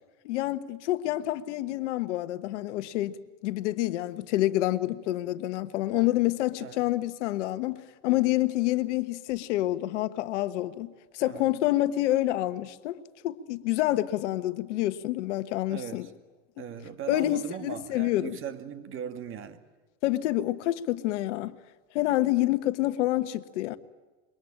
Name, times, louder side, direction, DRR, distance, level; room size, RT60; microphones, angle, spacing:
voice 1, 0.2-3.2 3.4-16.1 17.1-18.4 20.0-21.6 21.9-23.8, left 15 dB, 70° left, 1.4 m, -28 dB
voice 2, 15.7-16.1 16.6-19.6, right 8 dB, 35° right, 2.3 m, -39 dB
27.0 x 23.5 x 8.9 m
supercardioid pair, 130°, 36 cm